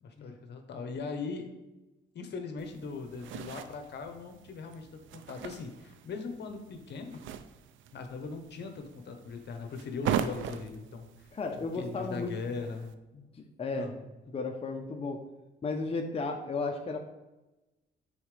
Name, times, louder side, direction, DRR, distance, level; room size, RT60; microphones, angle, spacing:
voice 1, 0.0-1.5 2.1-7.2 7.9-11.3 11.6-12.9 13.7-13.9, left 4 dB, 60° left, 6 dB, 1.0 m, -40 dB
sound 1, 2.6-12.9, right 9 dB, 80° right, 0.5 m, -40 dB
voice 2, 11.3-12.3 13.1-13.2 13.6-13.9 14.3-15.2 15.6-17.0, left 3 dB, 30° left, 3 dB, 0.8 m, -34 dB
9.7 x 4.1 x 3.3 m, 1.1 s
cardioid pair, 90°, 20 cm